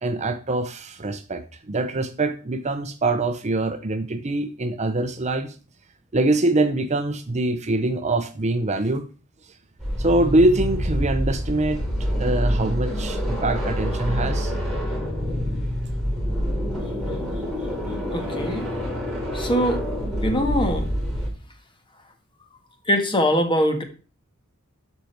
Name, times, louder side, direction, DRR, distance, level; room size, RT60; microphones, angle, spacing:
voice 1, 0.0-5.5 6.1-9.0 10.0-11.8 12.1-14.5, right 2 dB, 30° right, 9 dB, 0.7 m, -24 dB
sound 1, 9.8-21.3, equal, ahead, 5.0 m, -26 dB
voice 2, 18.1-18.7 19.3-19.9 20.2-20.9 22.9-23.8, equal, 20° left, 6 dB, 1.6 m, -22 dB
12.5 x 5.3 x 4.5 m, 0.37 s
head